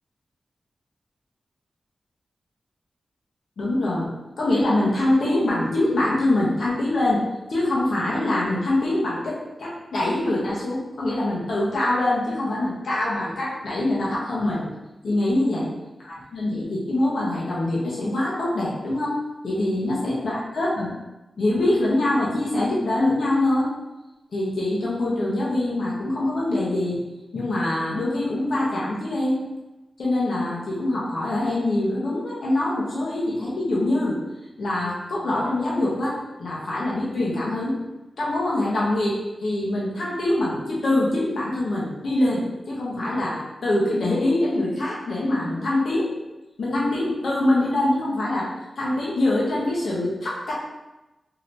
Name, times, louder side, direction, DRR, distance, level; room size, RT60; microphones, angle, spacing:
voice 1, 3.6-4.1 4.4-14.7 15.0-15.7 16.0-19.2 19.4-21.0 21.4-23.7 24.3-27.0 27.3-29.4 30.0-34.2 34.6-37.8 38.2-46.1 46.6-50.5, left 1 dB, 70° left, -6 dB, 0.8 m, -24 dB
3.2 x 2.8 x 2.6 m, 1.0 s
wide cardioid pair, 155°, 0 cm